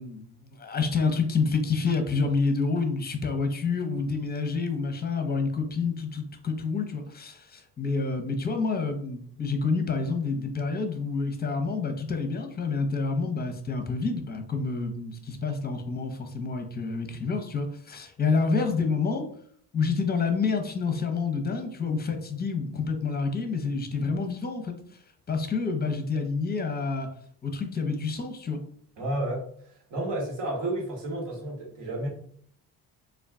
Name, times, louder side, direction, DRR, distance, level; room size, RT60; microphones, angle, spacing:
voice 1, 0.0-19.3 19.7-24.7 25.3-27.1 27.4-28.6, left 4 dB, 20° left, 6 dB, 0.6 m, -28 dB
voice 2, 29.0-29.4 29.9-32.1, right 1 dB, 70° right, -1 dB, 1.3 m, -31 dB
2.4 x 2.2 x 3.5 m, 0.62 s
supercardioid pair, 65°, 44 cm